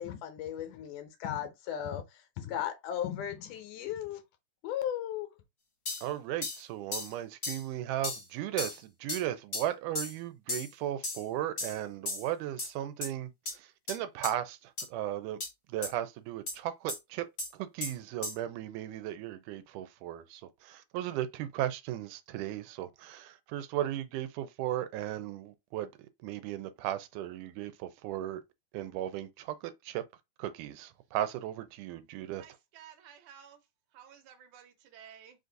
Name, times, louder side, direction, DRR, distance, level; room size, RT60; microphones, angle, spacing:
voice 1, 0.0-4.2 4.6-5.3, left 10 dB, 80° left, 2.2 m, -36 dB
sound 1, 5.8-6.0 6.4-6.6 6.9-7.1 7.4-7.6 8.0-8.2 8.6-8.8 9.1-9.2 9.5-9.7 9.9-10.1 10.5-10.7 11.0-11.2 11.6-11.8 12.0-12.2 12.6-12.7 13.0-13.1 13.4-13.5 13.9-14.0 14.2-14.3 14.8-14.9 15.4-15.5 15.8-15.9 16.5-16.6 16.9-17.0 17.4-17.5 17.8-17.9 18.2-18.3, left 2 dB, 45° left, 0.8 m, -35 dB
voice 2, 6.0-15.4 15.7-17.3 17.5-25.9 26.2-28.4 28.7-30.0 30.4-32.5, right 12 dB, 90° right, 2.1 m, -36 dB
voice 3, 32.8-33.6 34.0-35.3, right 9 dB, 75° right, 2.0 m, -53 dB
5.0 x 2.6 x 3.8 m
omnidirectional pair, 3.6 m